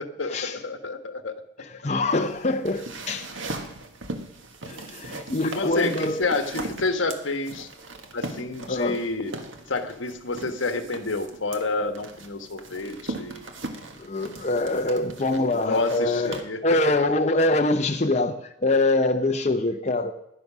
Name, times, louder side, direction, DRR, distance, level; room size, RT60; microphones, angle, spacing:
voice 1, 0.0-1.4 5.4-7.7 8.1-9.3 9.7-13.5 14.9-16.6 16.9-17.0, left 3 dB, 75° left, 1.3 m, -29 dB
voice 2, 1.6-3.3 4.6-6.2 8.7-9.0 14.0-20.1, left 2 dB, 35° left, 0.7 m, -24 dB
sound 1, 2.1-16.4, right 2 dB, 75° right, 1.5 m, -39 dB
15.5 x 11.0 x 6.1 m
head